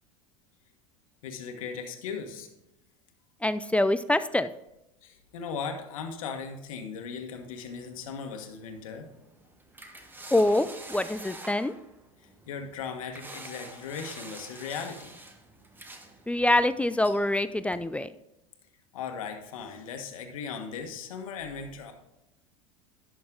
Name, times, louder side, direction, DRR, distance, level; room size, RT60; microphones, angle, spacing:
voice 1, 1.2-2.5 5.0-9.1 12.2-15.1 18.9-21.9, left 6 dB, 80° left, 5 dB, 1.4 m, -38 dB
voice 2, 3.4-4.5 10.3-11.7 16.3-18.1, left 1 dB, 5° left, 13 dB, 0.4 m, -25 dB
sound 1, 7.4-17.9, right 2 dB, 10° right, 1.2 m, -48 dB
11.0 x 6.3 x 3.8 m, 0.88 s
hypercardioid pair, 90°, 17 cm